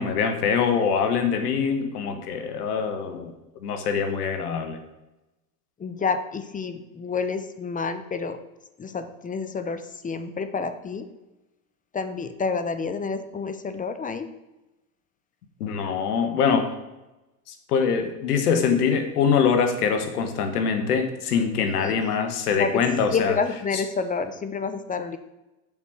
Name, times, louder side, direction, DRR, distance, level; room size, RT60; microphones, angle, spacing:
voice 1, 0.0-3.3 3.6-4.8 15.6-16.7 17.5-23.4 23.7-23.8, left 6 dB, 85° left, 7 dB, 1.4 m, -24 dB
voice 2, 5.8-8.4 8.8-11.0 11.9-14.3 21.8-22.1 22.6-22.8 23.1-25.2, left 5 dB, 20° left, 10 dB, 0.6 m, -29 dB
7.2 x 5.1 x 6.1 m, 1.0 s
hypercardioid pair, 100°, 45 cm